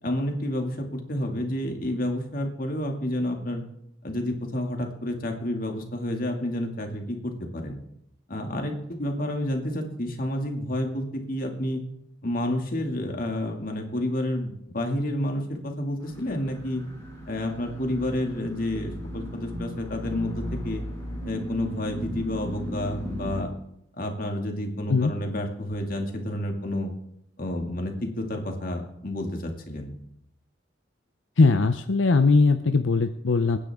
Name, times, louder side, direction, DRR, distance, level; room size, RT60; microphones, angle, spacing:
voice 1, 0.0-3.6 4.0-7.8 8.3-11.8 12.2-16.8 17.3-20.8 21.3-23.5 24.0-26.9 27.4-29.9, left 1 dB, 50° left, 3 dB, 2.3 m, -30 dB
sound 1, 16.0-23.4, equal, 15° left, 5.3 m, -36 dB
voice 2, 31.4-33.6, left 3 dB, 85° left, 9 dB, 0.6 m, -20 dB
27.0 x 10.0 x 3.6 m, 0.77 s
head